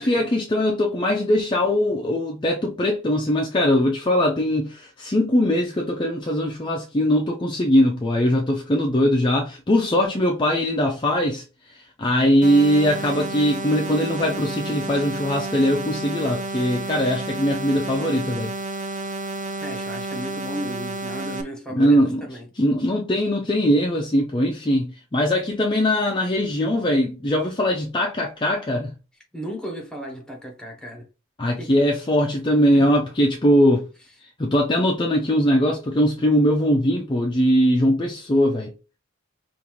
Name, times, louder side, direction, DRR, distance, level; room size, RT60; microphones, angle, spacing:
voice 1, 0.0-11.4 11.7-18.5 21.7-22.3 22.6-28.9 31.4-33.9 34.4-38.7, equal, 20° left, 0.5 m, -21 dB
sound 1, 12.4-21.4, right 2 dB, 35° right, 0.7 m, -31 dB
voice 2, 19.6-22.0 22.3-22.5 29.3-31.0 31.6-31.9 32.7-32.9, equal, 5° left, 1.0 m, -34 dB
5.3 x 2.6 x 3.0 m
head